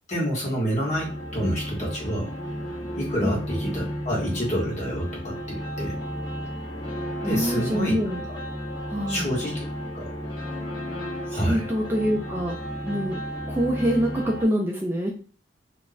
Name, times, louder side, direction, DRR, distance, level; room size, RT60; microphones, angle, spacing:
voice 1, 0.1-2.3 2.9-6.0 7.2-8.0 8.3-8.4 9.1-9.7 9.9-10.1 11.3-11.6, equal, 35° left, -4 dB, 1.2 m, -28 dB
sound 1, 0.9-14.4, equal, 20° left, 0.9 m, -33 dB
voice 2, 7.2-8.2 8.9-9.3 11.3-12.6 12.8-13.2 13.5-15.1, equal, 10° right, -1 dB, 0.4 m, -25 dB
2.4 x 2.3 x 3.8 m, 0.38 s
head